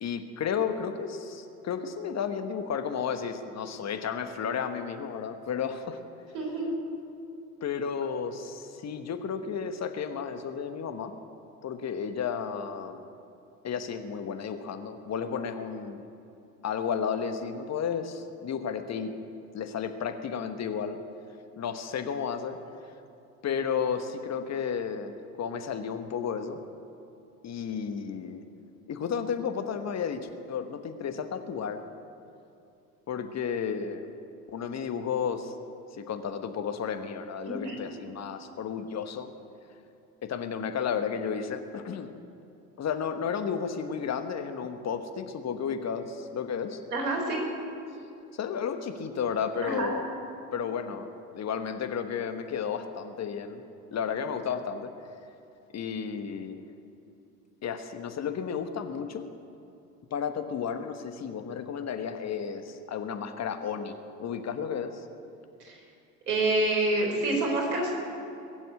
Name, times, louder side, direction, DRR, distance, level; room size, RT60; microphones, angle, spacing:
voice 1, 0.0-6.0 7.6-11.1 11.6-13.1 13.6-16.1 16.6-19.1 19.5-21.0 21.6-22.6 23.4-25.1 25.4-26.6 27.4-28.4 28.9-31.8 33.1-34.1 34.5-35.5 35.9-39.3 40.2-42.1 42.8-46.8 48.3-50.1 50.5-53.6 53.9-54.9 55.7-56.6 57.6-59.2 60.1-65.0, left 7 dB, 35° left, 8 dB, 1.3 m, -32 dB
voice 2, 6.3-6.7 37.5-37.8 46.9-47.4 49.6-49.9 65.6-65.8 66.3-67.9, right 2 dB, 80° right, 1 dB, 3.8 m, -27 dB
22.0 x 7.6 x 8.4 m, 2.7 s
hypercardioid pair, 70°, 46 cm